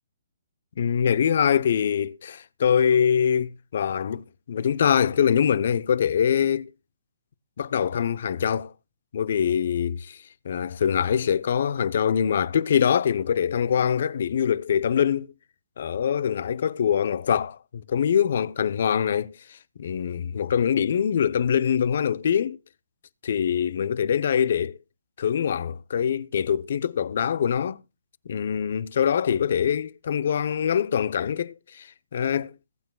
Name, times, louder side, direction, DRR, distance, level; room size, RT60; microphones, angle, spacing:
voice 1, 0.8-6.7 7.6-8.7 9.1-10.2 10.4-15.3 15.8-17.6 17.9-19.4 19.8-22.6 23.2-24.8 25.2-27.8 28.3-31.9 32.1-32.5, left 8 dB, 60° left, 0.7 m, -23 dB
21.0 x 8.9 x 2.2 m
hypercardioid pair, 135°, 0 cm